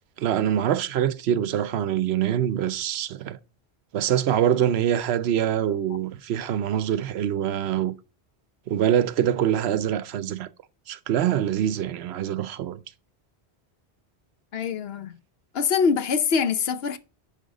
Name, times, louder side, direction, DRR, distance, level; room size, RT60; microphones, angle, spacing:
voice 1, 0.2-3.4 3.9-7.9 8.7-10.5 10.9-12.8, right 10 dB, 75° right, 0.8 m, -24 dB
voice 2, 14.5-15.2 15.5-17.0, left 6 dB, 65° left, 0.9 m, -24 dB
10.0 x 4.1 x 3.7 m
omnidirectional pair, 1.1 m